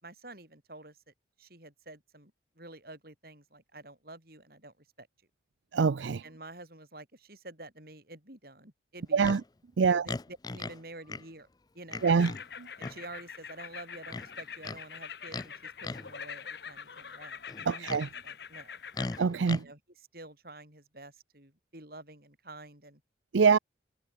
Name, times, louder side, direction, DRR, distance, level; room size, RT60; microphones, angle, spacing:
voice 1, 0.0-5.1 6.2-9.4 9.8-11.5 11.7-12.1 12.8-17.9 18.2-18.8 19.5-23.0, right 2 dB, 50° right, 6.4 m, -49 dB
voice 2, 5.7-6.2 9.1-9.4 9.8-10.0 12.0-12.3 17.7-18.1 19.2-19.6 23.3-23.6, right 5 dB, 80° right, 0.5 m, -24 dB
Livestock farm animals working animals, 9.2-9.4 10.1-10.8 11.1-11.2 11.9-12.4 12.8-13.0 14.1-14.8 15.3-15.5 15.8-16.1 17.5-18.1 18.9-19.6, left 3 dB, 20° left, 0.4 m, -38 dB
sound 1, 12.0-19.2, left 7 dB, 60° left, 1.1 m, -44 dB
head